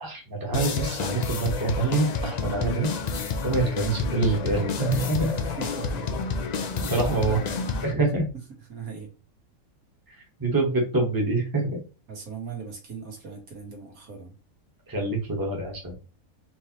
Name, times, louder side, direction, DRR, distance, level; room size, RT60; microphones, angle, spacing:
voice 1, 0.0-2.9 3.4-5.3 6.6-7.4 7.8-8.2 10.1-11.8 14.9-15.9, right 3 dB, 15° right, 0 dB, 1.1 m, -26 dB
sound 1, 0.5-7.9, left 4 dB, 75° left, 0.4 m, -29 dB
voice 2, 5.2-6.1 6.6-7.4 8.7-9.1 12.1-14.4, right 6 dB, 80° right, 1 dB, 1.8 m, -39 dB
4.4 x 3.3 x 2.9 m, 0.32 s
omnidirectional pair, 1.5 m